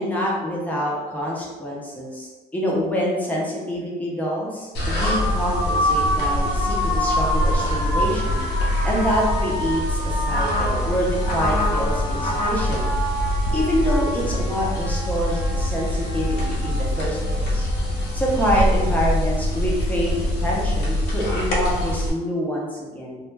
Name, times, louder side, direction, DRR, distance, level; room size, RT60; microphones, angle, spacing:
voice 1, 0.0-12.9 13.5-17.7 18.1-23.2, equal, 10° left, -4 dB, 0.7 m, -26 dB
sound 1, 4.7-22.1, left 1 dB, 80° left, 0.6 m, -23 dB
sound 2, 5.2-5.5 6.5-9.3, right 2 dB, 70° right, 0.5 m, -40 dB
2.1 x 2.0 x 3.2 m, 1.2 s
cardioid pair, 110°, 17 cm